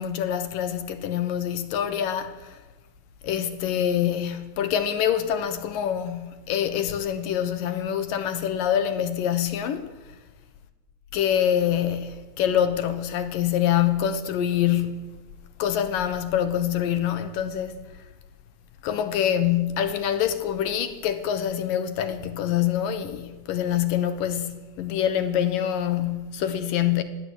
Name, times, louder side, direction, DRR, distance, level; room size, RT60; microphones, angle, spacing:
voice 1, 0.0-2.6 3.2-9.9 11.1-15.2 15.6-17.8 18.8-27.0, left 10 dB, 70° left, 2.8 m, -25 dB
20.5 x 16.5 x 8.4 m
omnidirectional pair, 4.3 m